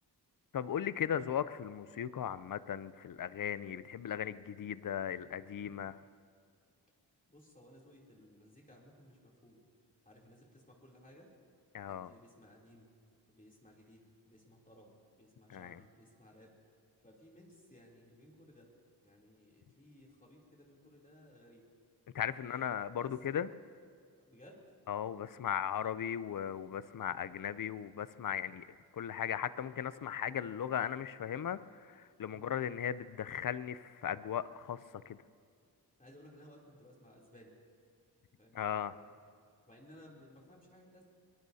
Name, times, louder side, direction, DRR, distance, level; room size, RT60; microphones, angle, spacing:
voice 1, 0.5-6.0 11.7-12.1 15.5-15.8 22.1-23.5 24.9-28.7 28.9-34.8 35.1-35.2 38.5-38.9, left 9 dB, 50° left, 16 dB, 0.5 m, -37 dB
voice 2, 7.3-9.6 10.0-11.3 11.9-12.9 13.3-16.5 17.0-18.7 19.0-21.6 22.3-23.5 24.2-24.7 36.0-37.6 38.4-39.2 39.6-41.0, equal, 20° left, -3 dB, 3.1 m, -59 dB
23.0 x 20.5 x 2.8 m, 2.2 s
wide cardioid pair, 85°, 41 cm